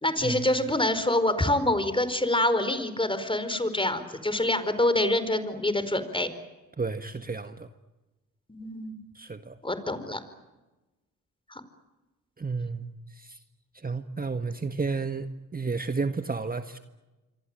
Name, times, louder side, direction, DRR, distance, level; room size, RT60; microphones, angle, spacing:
voice 1, 0.0-6.3 8.5-9.0 9.6-10.2 11.5-11.6, left 1 dB, 15° left, 11 dB, 4.6 m, -26 dB
voice 2, 6.8-7.7 9.1-9.6 12.4-13.4 13.7-16.8, right 4 dB, 25° right, 8 dB, 1.7 m, -32 dB
26.5 x 24.0 x 9.1 m, 1.1 s
supercardioid pair, 60°, 36 cm